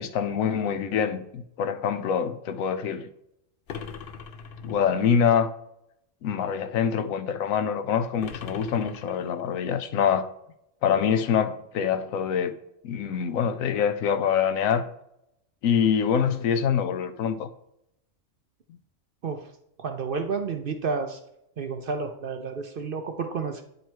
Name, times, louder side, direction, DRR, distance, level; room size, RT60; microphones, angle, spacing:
voice 1, 0.0-3.1 4.6-5.5 6.2-10.3 10.8-12.6 12.8-14.9 15.6-17.5, left 7 dB, 90° left, 1.1 m, -25 dB
sound 1, 3.7-5.1 8.2-9.7, left 6 dB, 55° left, 0.6 m, -40 dB
voice 2, 19.8-21.2 21.6-23.6, right 5 dB, 55° right, 0.6 m, -30 dB
9.2 x 3.2 x 4.5 m
omnidirectional pair, 1.4 m